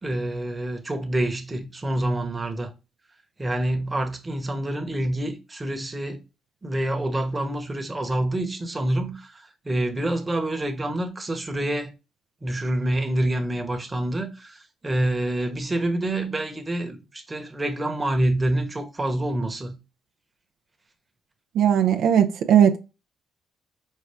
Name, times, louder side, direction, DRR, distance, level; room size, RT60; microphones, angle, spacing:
voice 1, 0.0-2.7 3.4-6.2 6.6-11.9 12.4-19.8, right 1 dB, 20° right, 1.0 m, -27 dB
voice 2, 21.5-22.8, right 9 dB, 75° right, 0.4 m, -18 dB
5.3 x 2.3 x 3.4 m
cardioid pair, 90°, 0 cm